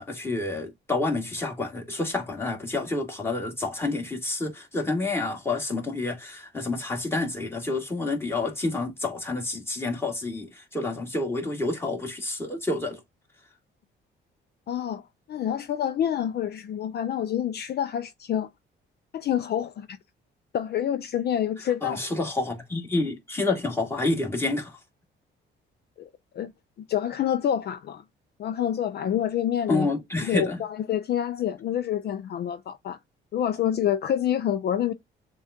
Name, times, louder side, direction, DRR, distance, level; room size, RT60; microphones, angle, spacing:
voice 1, 0.0-13.0 21.8-24.8 29.7-30.6, left 2 dB, 10° left, 2.0 m, -29 dB
voice 2, 14.7-18.5 19.1-20.0 20.5-22.0 26.0-26.1 26.3-26.5 26.9-28.0 28.4-29.9 30.3-33.0 33.3-34.9, left 10 dB, 55° left, 0.5 m, -27 dB
7.0 x 2.4 x 2.7 m
cardioid pair, 90°, 20 cm